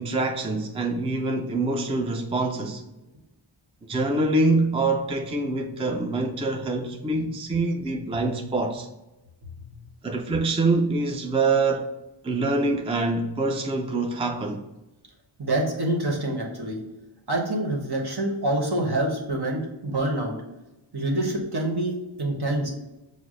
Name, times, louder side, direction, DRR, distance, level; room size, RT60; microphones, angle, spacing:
voice 1, 0.0-2.9 3.9-8.9 10.0-11.9 12.2-14.7, right 2 dB, 15° right, 0.4 m, -25 dB
voice 2, 15.4-16.8 17.3-20.3 20.9-22.7, right 1 dB, 55° right, 1.3 m, -26 dB
5.9 x 2.1 x 3.7 m
cardioid pair, 50°, 47 cm